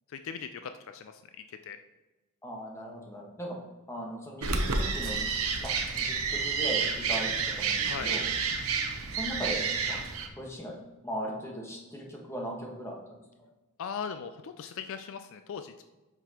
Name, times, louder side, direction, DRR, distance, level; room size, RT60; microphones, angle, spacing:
voice 1, 0.1-1.2 1.5-1.8 7.8-8.1 13.8-15.8, left 6 dB, 65° left, 9 dB, 0.4 m, -39 dB
voice 2, 2.4-3.6 3.9-5.2 5.6-7.3 7.6-8.2 9.1-10.0 10.3-10.8 11.0-13.0, equal, 10° left, -2 dB, 1.4 m, -38 dB
sound 1, 4.4-10.3, right 5 dB, 80° right, 0.9 m, -30 dB
8.0 x 6.0 x 2.9 m, 1.1 s
head